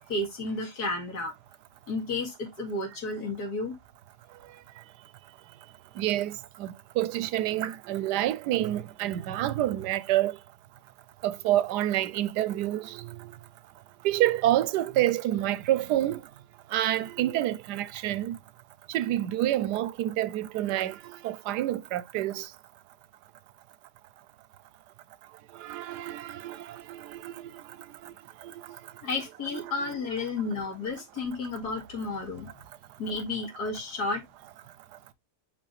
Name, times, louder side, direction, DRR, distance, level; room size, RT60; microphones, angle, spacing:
voice 1, 0.1-1.3 1.9-3.7 29.0-32.5 33.0-34.2, left 3 dB, 70° left, 2.6 m, -32 dB
voice 2, 6.0-10.4 11.2-13.3 14.0-16.2 16.7-18.4 18.9-22.5 25.5-27.5 28.0-28.1 28.4-28.8 29.5-29.7, right 13 dB, 90° right, 1.2 m, -28 dB
5.7 x 5.1 x 3.2 m
omnidirectional pair, 1.7 m